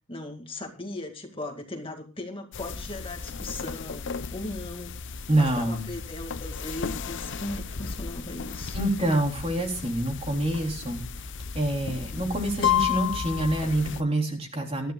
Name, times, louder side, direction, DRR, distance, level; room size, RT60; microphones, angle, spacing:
voice 1, 0.1-5.0 5.4-8.8, left 2 dB, 25° left, 4 dB, 2.1 m, -38 dB
sound 1, 2.5-14.0, left 7 dB, 60° left, 0.7 m, -33 dB
voice 2, 5.3-5.9 8.7-11.0 11.5-14.9, right 1 dB, 30° right, 2 dB, 3.2 m, -26 dB
22.0 x 13.0 x 2.3 m, 0.32 s
head